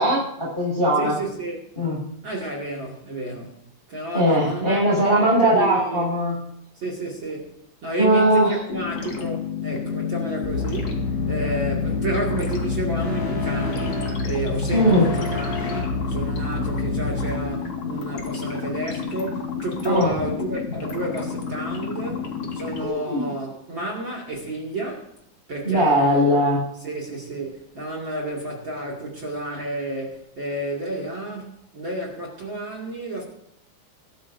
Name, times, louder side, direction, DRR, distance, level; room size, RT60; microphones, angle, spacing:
voice 1, 0.0-1.2 1.8-2.0 4.1-6.4 8.0-8.5 14.7-15.1 19.8-20.1 22.8-23.3 25.6-26.6, equal, 10° left, 6.4 m, -19 dB
voice 2, 1.0-1.6 2.2-3.6 3.9-6.1 6.7-7.5 7.8-25.2 25.5-26.3 26.8-33.2, right 2 dB, 40° right, 2.0 m, -31 dB
sound 1, 8.7-22.9, left 6 dB, 45° left, 2.1 m, -30 dB
sound 2, 10.4-17.3, left 3 dB, 80° left, 7.3 m, -28 dB
22.5 x 12.5 x 2.7 m
omnidirectional pair, 5.3 m